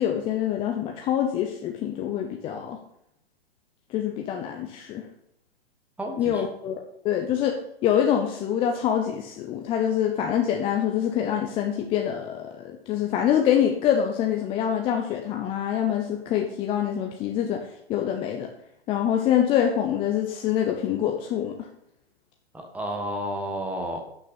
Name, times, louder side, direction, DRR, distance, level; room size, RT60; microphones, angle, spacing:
voice 1, 0.0-2.8 3.9-5.0 6.2-7.6 7.8-18.5 18.9-21.5, left 9 dB, 20° left, 3 dB, 0.6 m, -25 dB
voice 2, 6.0-6.4 22.5-24.0, equal, 5° right, 2 dB, 1.4 m, -31 dB
12.0 x 6.1 x 4.2 m, 0.74 s
figure-of-eight pair, 110°, 31 cm